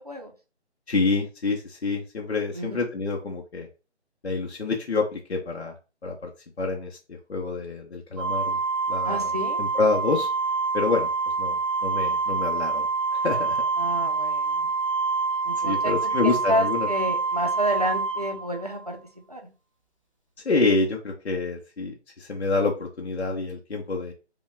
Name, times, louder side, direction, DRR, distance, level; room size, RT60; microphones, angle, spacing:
voice 1, 0.9-3.7 4.2-5.8 6.0-6.3 6.6-8.6 8.9-9.3 9.6-10.3 10.7-11.1 11.4-12.9 13.2-13.6 15.6-16.9 20.4-24.1, left 3 dB, 65° left, 0 dB, 0.9 m, -27 dB
Organ, 8.2-18.9, right 4 dB, 30° left, 0.7 m, -26 dB
voice 2, 9.0-9.6 13.8-14.7 15.4-19.0 19.3-19.4, equal, 35° right, 3 dB, 0.6 m, -30 dB
5.1 x 2.3 x 3.5 m, 0.32 s
figure-of-eight pair, 180°, 35 cm